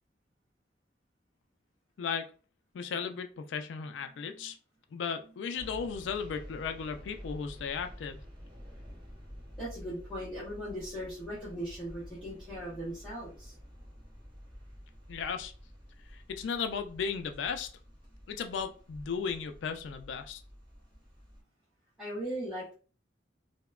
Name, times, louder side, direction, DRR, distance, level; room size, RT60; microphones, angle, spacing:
voice 1, 2.0-2.3 2.7-4.6 4.9-8.2 15.1-15.5 16.1-17.7 18.3-20.4, left 6 dB, 80° left, 8 dB, 0.3 m, -35 dB
voice 2, 4.1-4.5 5.2-5.3 7.2-7.3 9.6-13.5 21.3-21.4 22.0-22.7, equal, ahead, -12 dB, 0.9 m, -39 dB
sound 1, 5.6-21.4, equal, 30° right, 0.8 m, -50 dB
2.8 x 2.1 x 2.3 m, 0.37 s
head